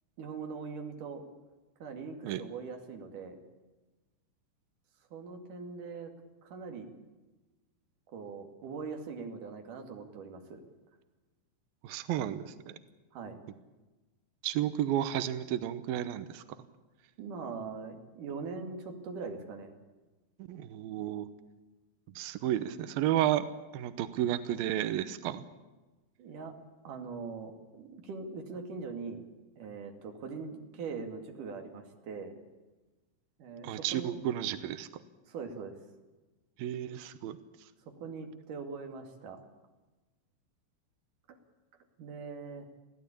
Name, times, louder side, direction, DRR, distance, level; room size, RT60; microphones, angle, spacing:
voice 1, 0.2-1.2 1.8-3.4 5.1-6.1 6.4-6.9 8.1-10.6 13.1-13.4 17.2-19.7 26.2-26.5 26.8-29.2 29.6-32.3 33.4-34.2 35.3-35.7 38.0-39.4 42.0-42.7, right 5 dB, 50° right, 4 dB, 3.4 m, -41 dB
voice 2, 11.8-12.8 14.4-16.4 20.5-21.3 22.2-23.5 23.7-25.4 33.6-34.9 36.6-37.4, right 12 dB, 90° right, 12 dB, 2.1 m, -32 dB
24.0 x 16.0 x 8.6 m, 1.2 s
omnidirectional pair, 5.6 m